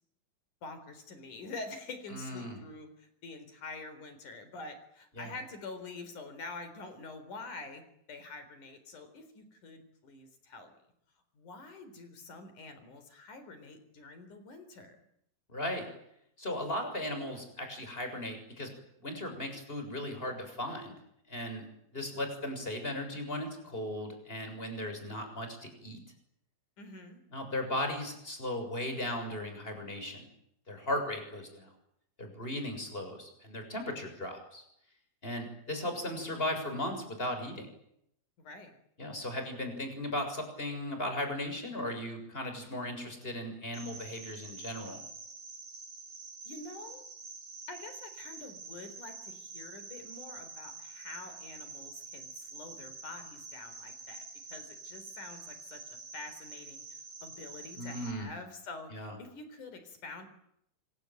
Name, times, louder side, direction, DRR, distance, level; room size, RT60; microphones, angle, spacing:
voice 1, 0.6-7.8 8.1-10.7 11.3-15.0 26.8-27.2 38.4-38.8 46.4-47.0 47.7-54.2 54.5-60.3, left 3 dB, 45° left, 10 dB, 5.1 m, -46 dB
voice 2, 2.1-2.6 5.2-5.3 15.5-15.8 16.4-18.7 19.0-20.9 21.3-21.7 21.9-26.0 27.3-30.2 30.7-31.7 32.2-34.6 35.2-37.7 39.0-45.0 57.8-58.3 58.9-59.1, left 1 dB, 10° left, 6 dB, 6.8 m, -37 dB
Cricket, 43.7-58.1, right 4 dB, 40° right, 4.7 m, -47 dB
26.5 x 24.5 x 9.2 m, 0.74 s
omnidirectional pair, 5.4 m